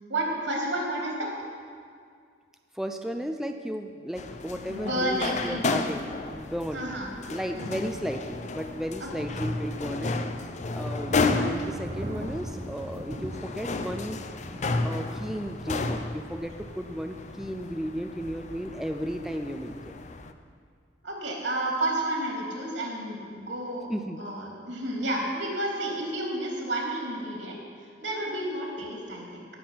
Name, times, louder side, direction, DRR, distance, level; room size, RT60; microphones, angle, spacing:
voice 1, 0.1-1.3 4.7-5.9 6.7-7.1 7.5-7.8 9.0-9.3 21.0-23.9 24.2-27.6 28.0-29.5, right 1 dB, 80° right, -2 dB, 3.3 m, -31 dB
voice 2, 2.7-6.9 7.3-10.2 10.7-14.2 14.8-19.9 23.9-24.2, equal, ahead, 4 dB, 0.5 m, -34 dB
sound 1, 4.2-20.3, left 3 dB, 40° left, 0.6 m, -33 dB
Thunder / Rain, 9.5-17.6, right 1 dB, 35° right, 0.9 m, -41 dB
18.0 x 7.5 x 5.9 m, 2.1 s
head